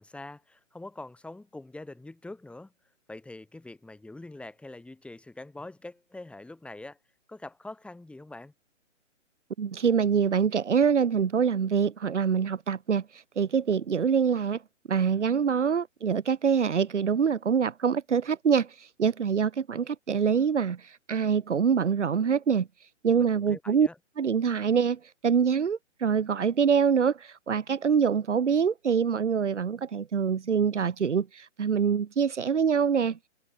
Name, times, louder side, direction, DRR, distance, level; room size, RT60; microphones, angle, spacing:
voice 1, 0.0-2.7 3.1-7.0 7.3-8.5 23.4-24.0, left 2 dB, 5° left, 6.0 m, -44 dB
voice 2, 9.6-13.1 13.4-14.6 14.9-18.7 19.0-22.7 23.0-23.9 24.2-33.2, right 6 dB, 65° right, 2.8 m, -25 dB
figure-of-eight pair, 140°, 38 cm